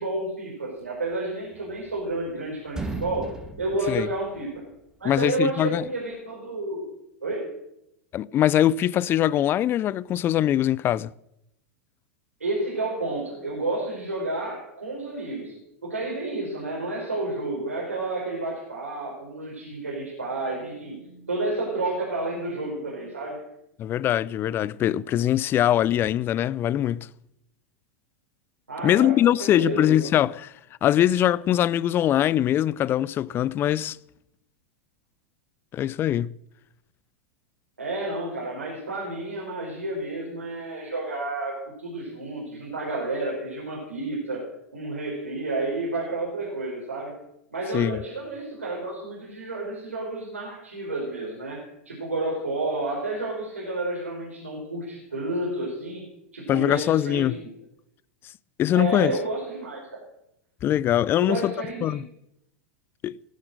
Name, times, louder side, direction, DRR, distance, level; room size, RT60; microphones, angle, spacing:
voice 1, 0.0-4.6 5.0-6.9 7.2-7.5 12.4-23.4 28.7-29.1 29.4-30.1 37.8-44.4 44.7-47.2 47.5-56.0 56.3-57.5 58.7-60.0 61.2-62.0, right 2 dB, 85° right, 5.0 m, -31 dB
sound 1, 1.5-2.4 2.7-4.8, right 3 dB, 10° right, 2.0 m, -37 dB
voice 2, 5.0-5.9 8.1-11.1 23.8-27.1 28.8-30.5 30.8-34.0 35.7-36.3 47.7-48.0 56.5-57.4 58.6-59.2 60.6-61.5 61.8-62.0 63.0-63.2, left 11 dB, 30° left, 0.5 m, -22 dB
18.0 x 12.0 x 6.6 m
figure-of-eight pair, 95°, 7 cm